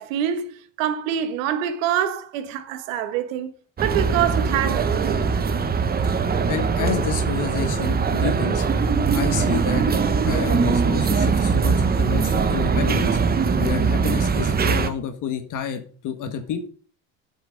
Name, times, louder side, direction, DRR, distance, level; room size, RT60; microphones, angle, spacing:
voice 1, 0.0-3.5 3.8-5.3, right 9 dB, 85° right, 1.4 m, -25 dB
sound 1, 3.8-14.9, right 5 dB, 25° right, 0.9 m, -21 dB
voice 2, 6.5-8.7 9.1-9.8 10.2-13.2 13.6-16.7, left 7 dB, 50° left, 1.6 m, -29 dB
8.6 x 6.3 x 5.1 m
supercardioid pair, 95°, 38 cm